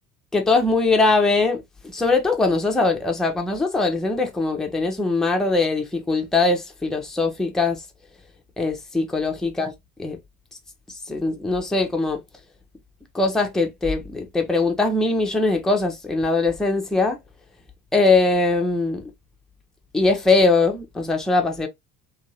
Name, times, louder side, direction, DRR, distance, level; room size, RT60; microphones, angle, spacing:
voice 1, 0.3-1.6 1.9-7.8 8.6-9.7 10.0-10.2 11.1-12.2 13.1-17.2 17.9-19.0 19.9-21.7, left 3 dB, ahead, 0.5 m, -21 dB
2.8 x 2.8 x 2.7 m
figure-of-eight pair, 60°, 45 cm